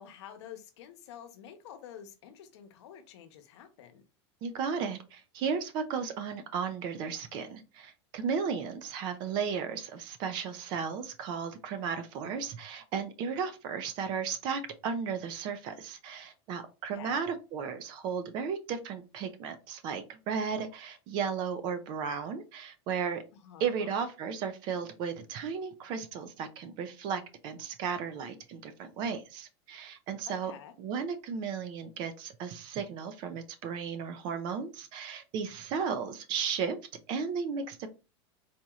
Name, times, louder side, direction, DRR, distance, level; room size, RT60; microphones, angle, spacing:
voice 1, 0.0-4.0 16.9-17.2 23.4-24.0 30.3-30.7, left 9 dB, 80° left, 8 dB, 0.9 m, -49 dB
voice 2, 4.4-23.2 23.6-30.5 30.8-36.8 37.1-37.9, right 6 dB, 30° right, 9 dB, 0.4 m, -35 dB
4.1 x 2.9 x 2.3 m, 0.30 s
supercardioid pair, 175°, 14 cm